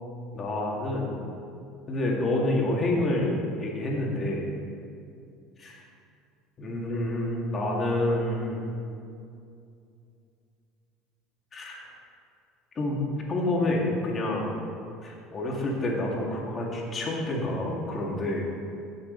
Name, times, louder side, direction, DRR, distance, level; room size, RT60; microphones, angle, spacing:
voice 1, 0.3-1.2 1.9-4.5 5.6-5.8 6.6-8.7 11.5-11.9 12.7-13.0 13.3-14.5 15.0-18.5, left 1 dB, 30° left, -2 dB, 2.5 m, -28 dB
16.0 x 6.7 x 4.1 m, 2.5 s
supercardioid pair, 110°, 0 cm